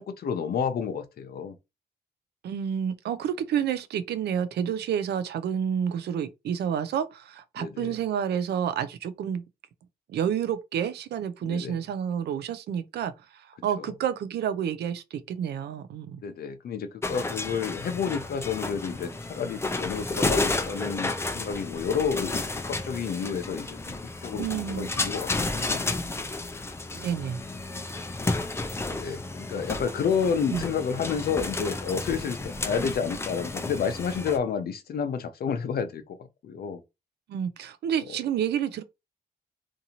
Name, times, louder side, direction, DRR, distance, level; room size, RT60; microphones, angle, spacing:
voice 1, 0.0-1.6 7.6-7.9 11.4-11.8 13.8-13.9 16.2-25.8 28.9-36.8, left 6 dB, 70° left, 0.5 m, -30 dB
voice 2, 2.4-9.4 10.1-16.2 24.4-24.9 26.9-27.4 30.5-30.6 37.3-38.8, right 8 dB, 85° right, 0.4 m, -29 dB
sound 1, 17.0-34.4, left 2 dB, 15° left, 0.4 m, -32 dB
2.6 x 2.5 x 2.8 m
cardioid pair, 85°, 17 cm